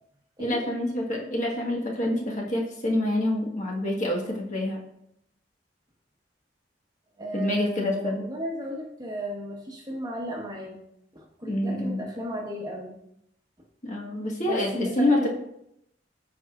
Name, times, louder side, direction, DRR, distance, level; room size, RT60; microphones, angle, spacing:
voice 1, 0.4-4.8 7.3-8.2 11.4-12.1 13.8-15.3, left 1 dB, 40° left, -2 dB, 1.4 m, -27 dB
voice 2, 7.2-10.8 11.1-12.9 14.4-15.3, equal, 20° right, -1 dB, 1.1 m, -34 dB
14.0 x 4.8 x 2.4 m, 0.77 s
head